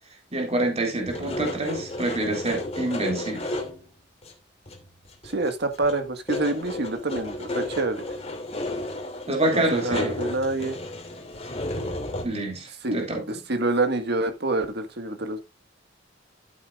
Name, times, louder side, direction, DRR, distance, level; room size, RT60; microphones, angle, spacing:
voice 1, 0.3-3.5 9.3-10.1 12.2-13.2, right 1 dB, 35° right, 3.9 m, -26 dB
sound 1, 1.1-3.9 4.2-4.3 4.7-5.5 5.7-12.2, left 1 dB, 30° left, 2.7 m, -33 dB
voice 2, 5.2-8.0 9.5-10.8 12.8-13.0 13.3-15.4, right 2 dB, 60° right, 1.8 m, -27 dB
13.5 x 8.6 x 2.5 m
head